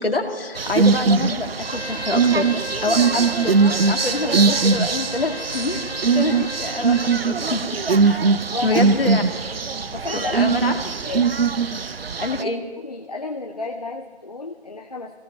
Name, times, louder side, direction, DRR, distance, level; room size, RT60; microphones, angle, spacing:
voice 1, 0.0-2.5 2.8-5.8 6.1-7.6 8.0-8.2 8.6-9.2 10.1-10.7 12.2-12.6, left 2 dB, 60° left, 4 dB, 2.0 m, -26 dB
sound 1, 0.6-12.4, right 4 dB, 60° right, 0.6 m, -21 dB
Bowed string instrument, 1.5-7.2, left 1 dB, 85° left, 1.4 m, -35 dB
voice 2, 8.5-8.9 9.9-10.5 11.0-11.2 12.4-12.5 12.8-15.2, left 3 dB, 35° left, 3 dB, 0.8 m, -32 dB
20.5 x 17.0 x 4.2 m, 1.5 s
figure-of-eight pair, 160°, 33 cm